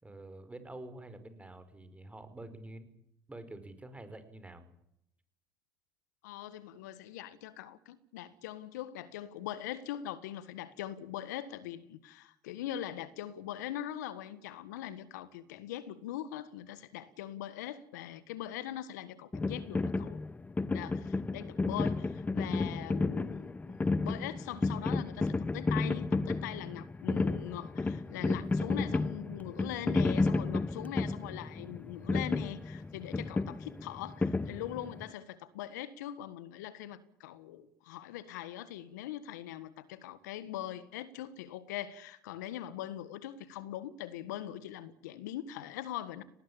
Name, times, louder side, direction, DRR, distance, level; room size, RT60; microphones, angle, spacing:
voice 1, 0.0-2.9 3.3-4.7, right 2 dB, 15° right, 5.0 m, -47 dB
voice 2, 6.2-20.2 20.7-46.2, left 12 dB, 80° left, 1.6 m, -42 dB
sound 1, 19.3-35.1, left 3 dB, 15° left, 0.7 m, -32 dB
19.5 x 19.0 x 8.9 m
hypercardioid pair, 70°, 9 cm